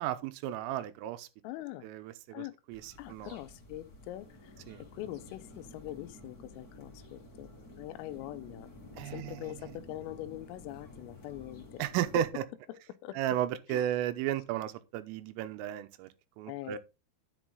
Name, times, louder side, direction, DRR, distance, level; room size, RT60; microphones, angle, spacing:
voice 1, 0.0-1.3 1.8-3.4 4.7-4.8 9.0-9.5 11.8-12.4 13.1-16.1 16.4-16.8, right 11 dB, 85° right, 3.4 m, -34 dB
voice 2, 1.4-1.9 2.3-2.6 3.0-7.5 7.8-8.7 9.1-11.8 12.7-13.2 13.7-13.9 16.5-16.8, left 15 dB, 85° left, 3.4 m, -43 dB
sound 1, 2.7-12.3, left 1 dB, 30° left, 1.9 m, -52 dB
10.5 x 7.3 x 3.8 m
omnidirectional pair, 5.8 m